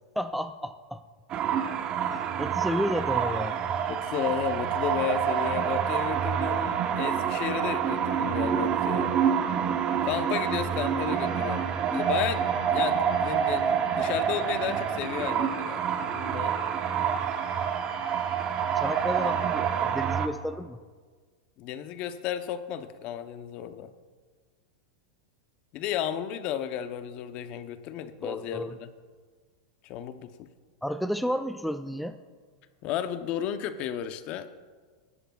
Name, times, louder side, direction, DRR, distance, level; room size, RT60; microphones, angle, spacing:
voice 1, 0.2-1.0 2.1-3.6 18.7-20.8 28.2-28.8 30.8-32.2, equal, ahead, 9 dB, 0.4 m, -32 dB
sound 1, 1.3-20.3, right 8 dB, 35° right, 0.8 m, -27 dB
voice 2, 3.9-9.2 10.0-16.5 19.2-19.3 21.6-23.9 25.7-28.9 29.8-30.5 32.8-34.5, left 10 dB, 45° left, 10 dB, 0.7 m, -33 dB
sound 2, 11.1-19.8, left 6 dB, 70° left, 1.9 m, -47 dB
19.0 x 11.0 x 2.4 m, 1.5 s
hypercardioid pair, 125°, 3 cm